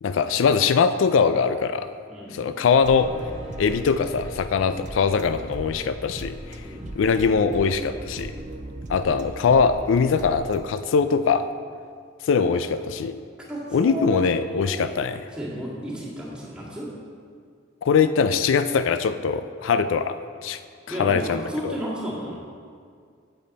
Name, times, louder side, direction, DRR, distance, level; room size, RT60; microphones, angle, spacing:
voice 1, 0.0-1.9 2.3-3.1 3.6-6.6 7.0-8.4 8.9-11.5 12.2-13.2 13.7-15.3 17.8-20.6 20.9-21.7, left 5 dB, 90° left, 11 dB, 0.4 m, -22 dB
voice 2, 2.1-2.5 6.6-7.0 13.5-14.9 15.3-16.9 20.9-22.4, equal, 5° right, -7 dB, 1.9 m, -32 dB
sound 1, 2.7-8.5, left 2 dB, 50° left, 1.5 m, -43 dB
sound 2, 2.8-10.6, right 1 dB, 40° right, 0.5 m, -38 dB
8.5 x 7.8 x 4.1 m, 2.1 s
head